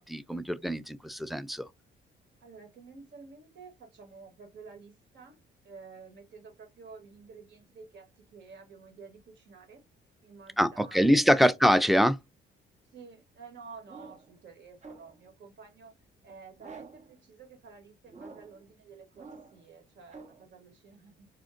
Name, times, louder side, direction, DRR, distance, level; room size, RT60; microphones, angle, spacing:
voice 1, 0.0-1.7 10.6-12.2, equal, ahead, 0.4 m, -24 dB
voice 2, 2.4-5.4 5.6-9.8 10.2-11.6 12.9-21.3, right 5 dB, 65° right, 2.0 m, -51 dB
sound 1, 13.8-14.4 14.8-15.3 16.6-17.1 18.1-18.6 19.1-19.7 20.1-20.4, right 4 dB, 35° right, 0.9 m, -48 dB
4.2 x 2.5 x 2.4 m
cardioid pair, 90°, 20 cm